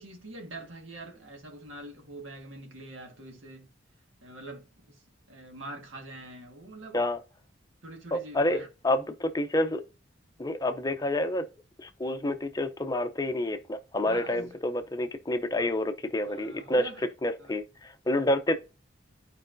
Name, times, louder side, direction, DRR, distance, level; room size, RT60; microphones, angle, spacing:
voice 1, 0.0-3.7 4.2-5.0 5.3-7.0 7.8-8.7 14.0-14.6 16.3-17.1 17.4-17.5, right 1 dB, 90° right, 1.6 m, -44 dB
voice 2, 8.1-9.8 10.4-11.4 11.8-16.9 17.2-18.5, left 1 dB, 20° left, 0.5 m, -28 dB
11.0 x 4.6 x 2.6 m
head